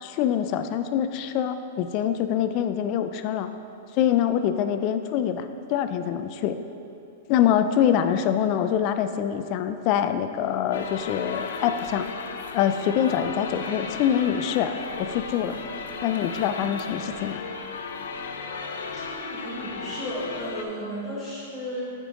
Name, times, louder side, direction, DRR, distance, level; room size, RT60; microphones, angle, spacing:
voice 1, 0.0-3.5 3.9-6.6 7.3-12.1 12.5-14.7 15.0-15.6 16.0-17.4, left 9 dB, 35° left, 9 dB, 0.3 m, -25 dB
sound 1, 10.7-20.7, left 4 dB, 90° left, 0.6 m, -35 dB
voice 2, 18.9-21.9, equal, 10° right, -9 dB, 1.4 m, -34 dB
8.4 x 5.1 x 3.7 m, 2.7 s
supercardioid pair, 160°, 0 cm